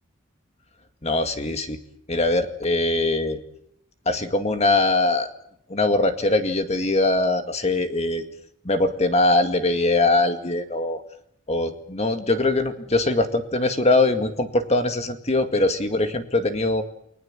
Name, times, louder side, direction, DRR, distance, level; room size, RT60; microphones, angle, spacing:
voice 1, 1.0-1.8 2.1-3.4 4.1-5.3 5.7-8.2 8.6-11.0 11.5-16.8, left 2 dB, 35° left, 7 dB, 2.1 m, -22 dB
29.5 x 19.0 x 7.6 m, 0.72 s
head